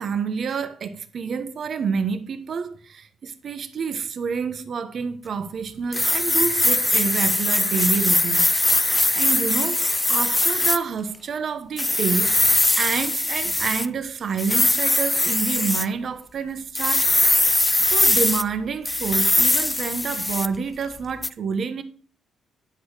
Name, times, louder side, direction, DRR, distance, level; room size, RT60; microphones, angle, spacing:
voice 1, 0.0-8.5 8.7-12.3 12.8-17.1 17.9-21.8, right 6 dB, 50° right, 1.1 m, -28 dB
sound 1, 5.9-10.8 11.8-13.9 14.4-15.9 16.7-18.4 18.9-20.6 21.2-21.3, left 2 dB, 10° left, 0.4 m, -21 dB
10.5 x 6.4 x 4.9 m
cardioid pair, 125°, 0 cm